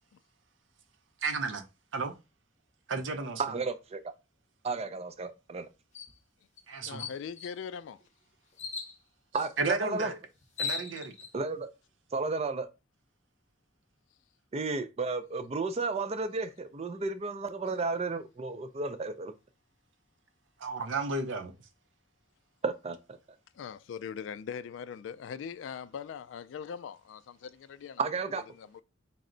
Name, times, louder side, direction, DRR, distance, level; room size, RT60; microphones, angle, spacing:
voice 1, 1.2-1.6 1.9-2.2 2.9-3.4 6.7-7.1 9.6-10.2 10.6-11.1 20.6-21.5, right 3 dB, 85° right, 0.6 m, -33 dB
voice 2, 3.4-4.0 4.6-5.7 9.3-10.1 11.3-11.7 12.1-12.7 14.5-19.3 22.6-23.2 28.0-28.4, right 3 dB, 35° right, 0.4 m, -33 dB
sound 1, 5.9-6.1 6.6-6.7 7.0-7.6 8.6-9.0 10.1-10.2 10.4-11.3, left 5 dB, 40° left, 0.7 m, -37 dB
voice 3, 6.8-8.0 23.6-28.0 28.6-28.8, left 7 dB, 75° left, 0.3 m, -41 dB
4.3 x 2.0 x 3.7 m
head